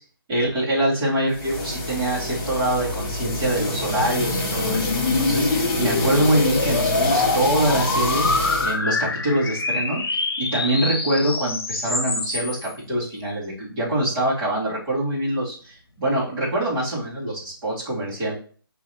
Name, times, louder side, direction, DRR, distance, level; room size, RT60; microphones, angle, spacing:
voice 1, 0.3-18.3, right 1 dB, 20° right, -8 dB, 2.3 m, -24 dB
sound 1, 1.3-8.7, left 1 dB, 20° left, 1.2 m, -26 dB
sound 2, 3.1-12.7, left 3 dB, 80° left, 0.9 m, -26 dB
5.4 x 3.1 x 2.9 m, 0.41 s
hypercardioid pair, 160°, 13 cm